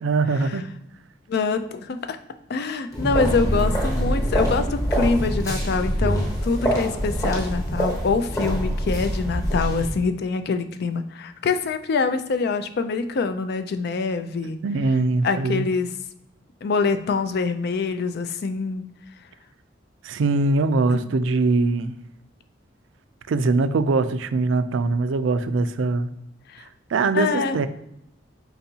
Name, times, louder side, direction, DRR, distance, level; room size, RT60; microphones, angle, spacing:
voice 1, 0.0-0.7 14.6-15.7 20.0-22.0 23.3-26.1 26.6-27.7, right 3 dB, 85° right, 0.4 m, -22 dB
voice 2, 1.3-2.2 2.5-14.6 15.2-15.9 16.6-18.9 21.0-21.1 26.5-26.6 27.1-27.6, left 4 dB, 60° left, 0.4 m, -25 dB
sound 1, 2.9-9.9, equal, 20° left, 1.0 m, -24 dB
4.5 x 3.9 x 2.8 m
head